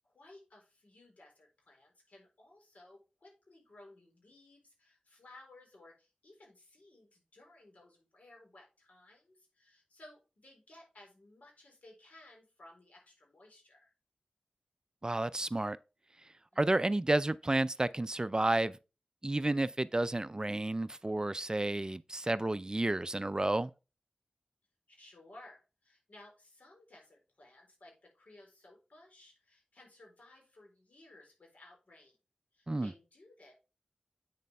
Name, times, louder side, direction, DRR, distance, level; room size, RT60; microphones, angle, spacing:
voice 1, 0.1-13.9 24.9-32.2 32.5-33.5, left 2 dB, 75° left, 4.1 m, -58 dB
voice 2, 15.0-15.8 16.6-18.8 19.2-23.7 32.7-32.9, right 2 dB, 30° right, 0.4 m, -31 dB
8.4 x 6.6 x 3.4 m
wide cardioid pair, 50°, 2 cm